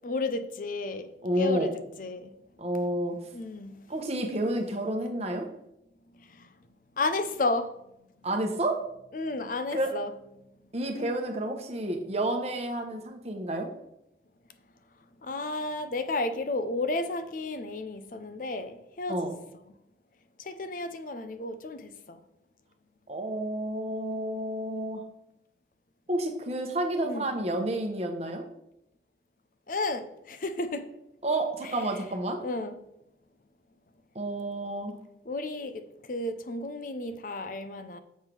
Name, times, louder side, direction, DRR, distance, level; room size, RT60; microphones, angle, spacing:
voice 1, 0.0-1.1 1.4-1.7 2.0-2.3 3.3-3.7 6.4-6.5 7.0-7.7 9.1-10.1 15.2-19.2 20.4-22.2 27.0-27.3 29.7-30.8 31.6-32.0 32.4-32.8 35.3-38.0, left 2 dB, 50° left, 9 dB, 0.6 m, -32 dB
voice 2, 1.2-1.7 2.6-3.2 3.9-5.5 8.2-8.8 9.7-10.0 10.7-13.7 19.1-19.3 23.1-25.0 26.1-28.4 31.2-32.4 34.1-35.0, right 1 dB, 35° right, 3 dB, 1.0 m, -30 dB
7.3 x 3.6 x 6.0 m, 0.82 s
head